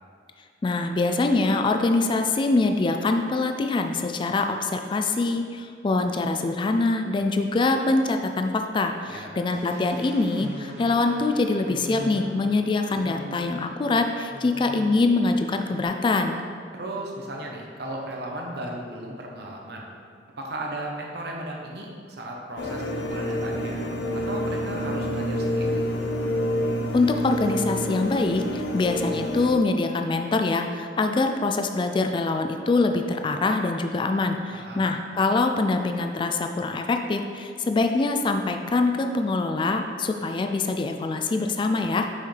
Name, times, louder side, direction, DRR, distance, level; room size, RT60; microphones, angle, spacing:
voice 1, 0.6-16.4 26.9-42.1, left 3 dB, 30° left, 5 dB, 0.3 m, -24 dB
sound 1, 9.5-15.2 15.5-15.8, equal, 85° right, 1.0 m, -41 dB
voice 2, 16.7-19.9 20.4-23.8 24.1-25.8 34.5-34.8, right 1 dB, 65° right, -1 dB, 1.0 m, -35 dB
sound 2, 22.6-29.6, equal, 85° left, 0.6 m, -28 dB
6.3 x 5.7 x 3.3 m, 2.2 s
head